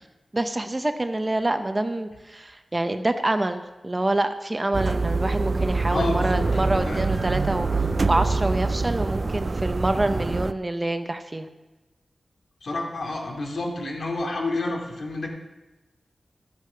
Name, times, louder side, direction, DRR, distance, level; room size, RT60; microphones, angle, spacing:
voice 1, 0.3-11.5, right 1 dB, 25° right, 8 dB, 0.8 m, -26 dB
sound 1, 4.7-10.5, right 3 dB, 45° right, 0.4 m, -25 dB
voice 2, 5.9-7.0 12.6-15.3, left 2 dB, 75° left, 0 dB, 2.4 m, -29 dB
12.0 x 8.3 x 5.7 m, 1.1 s
wide cardioid pair, 75°, 0 cm